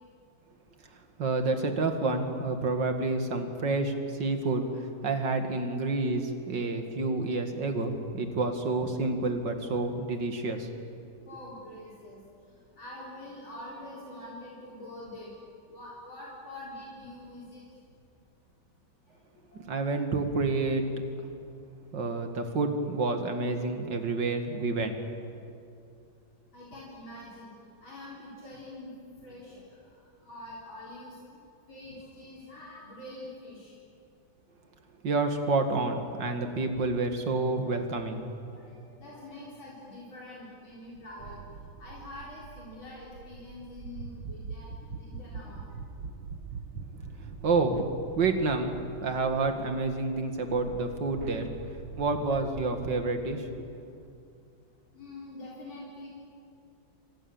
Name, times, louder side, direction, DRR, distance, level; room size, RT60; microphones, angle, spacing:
voice 1, 1.2-10.7 19.7-20.8 21.9-25.0 35.0-38.3 47.4-48.7 49.0-51.5 52.0-53.5, right 3 dB, 65° right, 6 dB, 2.6 m, -29 dB
voice 2, 11.2-12.2 12.8-15.3 15.7-17.6 19.1-19.2 19.5-19.6 26.5-27.5 27.8-28.9 29.2-30.0 30.2-31.2 31.7-33.7 38.5-45.6 51.8-52.0 54.9-56.1, left 1 dB, 90° left, -5 dB, 5.0 m, -45 dB
sound 1, 41.2-53.1, right 5 dB, 85° right, 2.0 m, -43 dB
29.0 x 24.5 x 7.2 m, 2.5 s
omnidirectional pair, 2.1 m